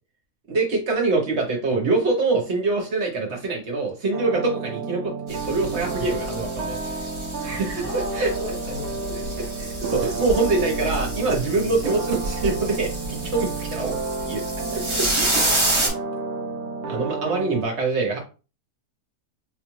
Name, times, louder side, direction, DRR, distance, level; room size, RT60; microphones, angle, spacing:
voice 1, 0.5-7.0 7.4-8.3 9.6-13.9 14.2-14.4 14.7-15.4 15.8-15.9 16.8-18.2, right 3 dB, 50° right, 0 dB, 1.1 m, -24 dB
sound 1, 4.1-17.6, right 4 dB, 75° right, 1.1 m, -31 dB
sound 2, 5.3-15.9, right 1 dB, 25° right, 0.8 m, -29 dB
voice 2, 7.8-9.7, left 2 dB, 50° left, -1 dB, 0.8 m, -37 dB
3.9 x 2.4 x 3.0 m, 0.33 s
omnidirectional pair, 1.7 m